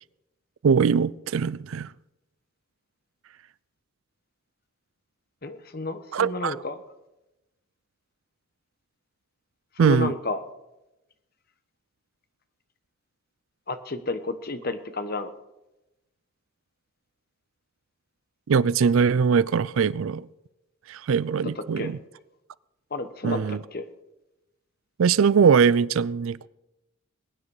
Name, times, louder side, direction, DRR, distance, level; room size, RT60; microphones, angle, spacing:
voice 1, 0.6-1.9 6.1-6.5 9.8-10.1 18.5-20.3 20.9-22.0 23.2-23.6 25.0-26.5, right 6 dB, 70° right, 0.4 m, -21 dB
voice 2, 5.4-6.8 9.8-10.4 13.7-15.3 21.6-21.9 22.9-23.8, left 3 dB, 45° left, 1.1 m, -31 dB
21.0 x 9.7 x 4.8 m
head